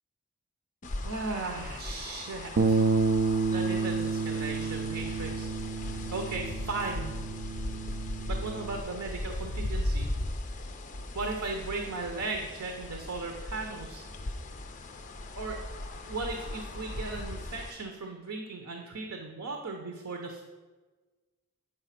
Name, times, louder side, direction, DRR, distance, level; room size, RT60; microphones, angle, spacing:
sound 1, 0.8-17.7, left 1 dB, 35° left, 0.5 m, -38 dB
voice 1, 1.0-3.0 3.5-5.5 5.8-7.3 8.3-10.1 11.1-14.1 15.4-15.6 16.0-20.4, right 3 dB, 90° right, 3 dB, 0.8 m, -37 dB
Bass guitar, 2.6-8.8, right 4 dB, 50° right, 0.4 m, -30 dB
7.9 x 4.9 x 5.8 m, 1.3 s
head